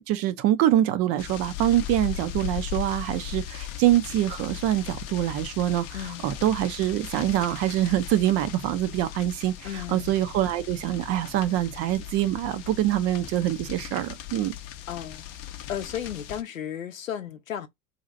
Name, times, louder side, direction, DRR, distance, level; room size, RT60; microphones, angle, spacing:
voice 1, 0.1-5.8 6.2-14.5, right 13 dB, 40° right, 0.5 m, -25 dB
sound 1, 1.2-16.4, left 12 dB, 40° left, 0.6 m, -38 dB
voice 2, 9.6-10.1 14.9-15.2 15.7-17.7, left 9 dB, 90° left, 0.6 m, -34 dB
2.8 x 2.4 x 3.9 m
figure-of-eight pair, 85°, 39 cm